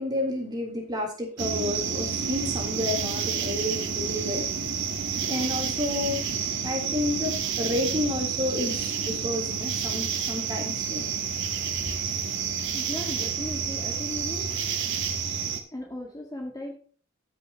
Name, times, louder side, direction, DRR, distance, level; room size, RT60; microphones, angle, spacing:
voice 1, 0.0-4.4 5.2-6.2 6.6-11.1, left 1 dB, 20° right, 0 dB, 3.6 m, -30 dB
sound 1, 1.4-15.6, right 6 dB, 60° right, 1.5 m, -29 dB
voice 2, 12.7-14.5 15.7-16.7, left 1 dB, 20° left, 1 dB, 1.8 m, -37 dB
14.5 x 6.7 x 3.0 m, 0.42 s
head